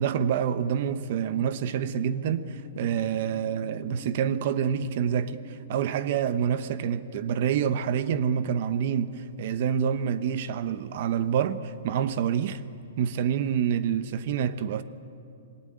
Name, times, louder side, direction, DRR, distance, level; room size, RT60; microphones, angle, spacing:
voice 1, 0.0-12.6 13.0-14.8, right 8 dB, 40° right, 1.1 m, -27 dB
sound 1, 0.6-12.6, left 9 dB, 20° left, 0.9 m, -49 dB
27.0 x 21.0 x 9.2 m
hypercardioid pair, 175°, 0 cm